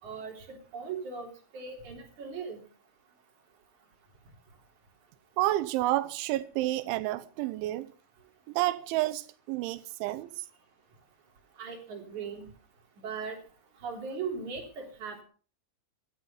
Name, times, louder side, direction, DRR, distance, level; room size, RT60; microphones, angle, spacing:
voice 1, 0.0-2.6 11.6-12.5 13.0-13.4 13.8-15.2, right 5 dB, 45° right, 4.4 m, -38 dB
voice 2, 5.4-7.9 8.5-10.5, right 16 dB, 90° right, 3.2 m, -30 dB
16.5 x 12.0 x 5.4 m
omnidirectional pair, 5.3 m